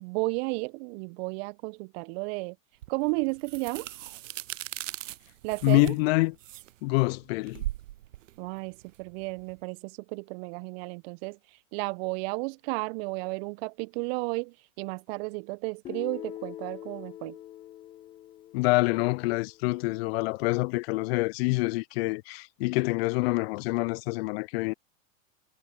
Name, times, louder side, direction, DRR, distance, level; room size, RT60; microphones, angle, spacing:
voice 1, 0.0-2.6 2.9-3.9 5.4-5.9 8.4-11.4 11.7-17.4, right 30 dB, 45° right, 1.3 m, -33 dB
sound 1, 2.8-9.6, right 14 dB, 65° right, 0.6 m, -40 dB
voice 2, 5.6-6.3 6.8-7.6 18.5-24.7, left 24 dB, 45° left, 0.8 m, -26 dB
Guitar, 15.8-19.8, left 13 dB, 15° left, 0.3 m, -44 dB
figure-of-eight pair, 95°, 41 cm